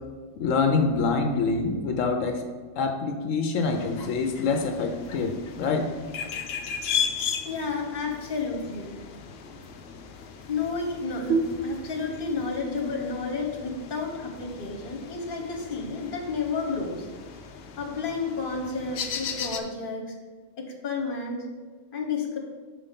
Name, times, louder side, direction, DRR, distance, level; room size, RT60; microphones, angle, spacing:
voice 1, 0.4-2.4 2.8-5.9, left 4 dB, 85° left, 5 dB, 1.1 m, -25 dB
sound 1, 3.6-19.6, left 7 dB, 60° left, 0.8 m, -37 dB
voice 2, 7.4-9.0 10.5-17.0 17.8-20.0 20.6-21.4 21.9-22.4, left 4 dB, 45° left, 2 dB, 1.2 m, -31 dB
sound 2, 11.3-14.7, right 3 dB, 70° right, 1.0 m, -32 dB
5.1 x 4.8 x 5.7 m, 1.5 s
omnidirectional pair, 1.3 m